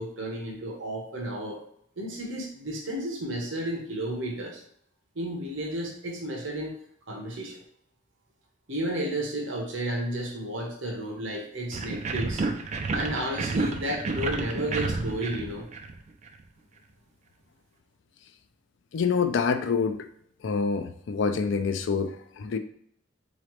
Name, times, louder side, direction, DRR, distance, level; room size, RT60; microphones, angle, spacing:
voice 1, 0.0-1.6 2.0-4.6 5.2-6.8 7.1-7.6 8.7-12.5 12.9-15.7, right 1 dB, 70° right, -1 dB, 0.9 m, -32 dB
sound 1, 11.7-16.3, right 3 dB, 35° right, 0.3 m, -31 dB
voice 2, 18.9-20.1 20.4-22.6, left 5 dB, 65° left, 9 dB, 0.4 m, -26 dB
3.9 x 3.1 x 3.1 m, 0.68 s
head